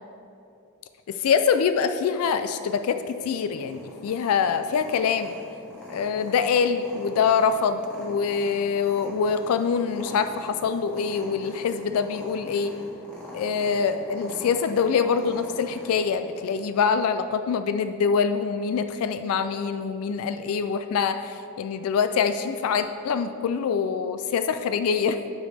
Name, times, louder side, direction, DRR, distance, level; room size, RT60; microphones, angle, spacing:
voice 1, 1.1-5.3 5.9-12.7 13.3-25.2, left 6 dB, 80° left, 9 dB, 0.3 m, -25 dB
Purr, 2.8-16.7, equal, 5° left, 1.3 m, -44 dB
12.5 x 5.0 x 3.4 m, 2.7 s
head